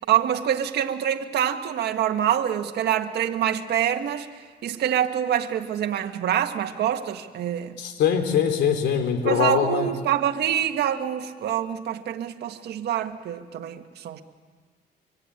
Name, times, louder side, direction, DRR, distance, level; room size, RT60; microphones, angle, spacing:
voice 1, 0.1-4.3 4.6-7.8 9.3-14.2, right 10 dB, 75° right, 5 dB, 1.7 m, -25 dB
voice 2, 7.8-9.9, left 8 dB, 85° left, 7 dB, 3.4 m, -22 dB
24.5 x 24.0 x 9.9 m, 1.5 s
cardioid pair, 100°, 17 cm